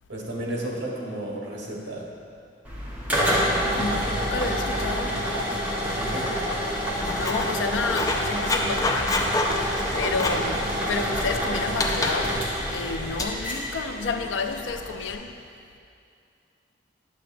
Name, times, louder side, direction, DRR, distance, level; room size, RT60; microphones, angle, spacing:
voice 1, 0.1-2.1 3.6-4.0 5.9-6.4, right 1 dB, 75° right, 1.3 m, -33 dB
sound 1, 2.6-15.1, equal, 10° right, 1.0 m, -28 dB
voice 2, 3.7-5.3 7.0-12.4 12.7-15.4, left 4 dB, 85° left, 0.4 m, -31 dB
Writing, 6.7-13.2, left 2 dB, 20° left, 0.4 m, -29 dB
8.8 x 6.6 x 2.6 m
head